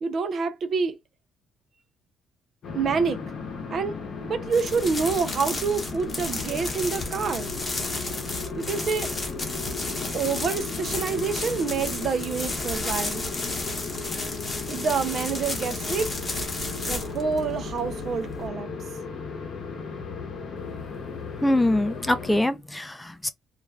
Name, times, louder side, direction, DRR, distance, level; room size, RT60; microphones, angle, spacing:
voice 1, 0.0-1.0 2.7-3.2 3.7-3.9 4.2-7.5 8.6-9.1 10.1-13.3 14.7-16.1 16.9-18.7, right 5 dB, 50° right, 0.5 m, -27 dB
sound 1, 2.6-22.4, left 4 dB, 55° left, 0.8 m, -36 dB
sound 2, 4.5-18.5, left 2 dB, 30° left, 1.0 m, -33 dB
voice 2, 21.4-23.3, left 1 dB, 10° left, 0.4 m, -23 dB
2.4 x 2.2 x 3.1 m
cardioid pair, 110°, 0 cm